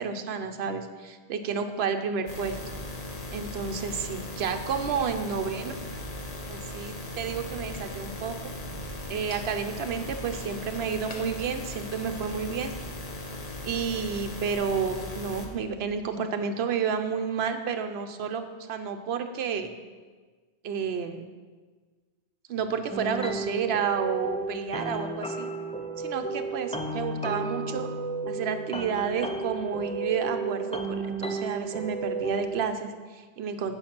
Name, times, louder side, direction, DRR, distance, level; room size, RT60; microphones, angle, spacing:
voice 1, 0.0-2.6 3.3-5.8 6.5-8.5 9.1-12.7 13.6-19.7 20.6-21.2 22.5-25.5 26.0-27.9 28.3-33.8, right 6 dB, 70° right, 7 dB, 0.9 m, -31 dB
sound 1, 2.3-15.5, left 2 dB, 35° left, 1.1 m, -38 dB
sound 2, 22.9-32.7, right 3 dB, 10° left, 0.4 m, -33 dB
8.9 x 5.3 x 6.0 m, 1.4 s
omnidirectional pair, 1.1 m